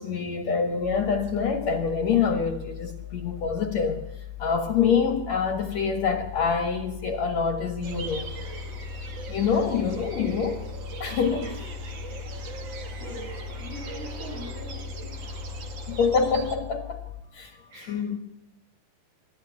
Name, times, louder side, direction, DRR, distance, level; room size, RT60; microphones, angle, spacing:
voice 1, 0.0-4.0 4.4-8.3 9.3-10.7 11.0-11.5 15.9-17.0 17.3-18.2, left 6 dB, 55° left, 2.2 m, -26 dB
sound 1, 0.8-17.2, left 12 dB, 10° right, 2.3 m, -40 dB
sound 2, 7.8-16.6, right 3 dB, 45° right, 1.6 m, -38 dB
voice 2, 9.4-9.7 11.4-11.7 12.1-12.4 13.0-16.0 17.7-18.0, left 1 dB, 90° right, 9.7 m, -45 dB
24.0 x 13.5 x 9.5 m
omnidirectional pair, 4.4 m